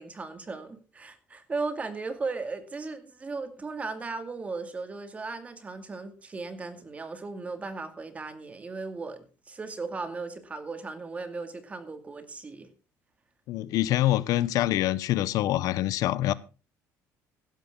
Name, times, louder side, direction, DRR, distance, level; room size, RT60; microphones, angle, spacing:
voice 1, 0.0-12.7, right 3 dB, 20° right, 2.3 m, -36 dB
voice 2, 13.5-16.3, left 14 dB, 65° left, 0.7 m, -25 dB
15.5 x 12.5 x 3.7 m
cardioid pair, 135°, 6 cm